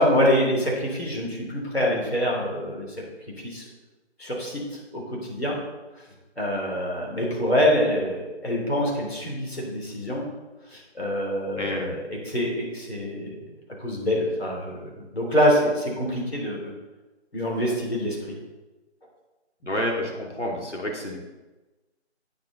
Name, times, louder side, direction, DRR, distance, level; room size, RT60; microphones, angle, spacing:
voice 1, 0.0-2.9 3.4-3.6 4.2-4.6 4.9-5.6 6.4-10.3 10.7-13.5 13.8-16.7 17.3-18.4, equal, 60° left, -2 dB, 3.4 m, -25 dB
voice 2, 11.5-12.0 19.6-21.2, equal, 85° left, -1 dB, 2.6 m, -29 dB
9.4 x 7.7 x 3.9 m, 1.1 s
figure-of-eight pair, 165°, 34 cm